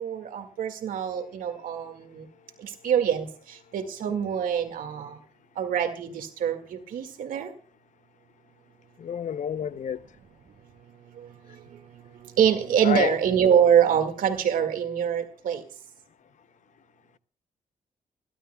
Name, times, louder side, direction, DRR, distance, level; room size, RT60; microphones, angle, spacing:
voice 1, 0.0-2.2 2.8-3.3 3.7-5.2 5.6-7.5 12.4-15.6, right 8 dB, 90° right, 2.0 m, -24 dB
voice 2, 9.0-10.0 12.8-13.1, left 8 dB, 60° left, 0.6 m, -28 dB
29.0 x 12.5 x 2.3 m
cardioid pair, 75°, 14 cm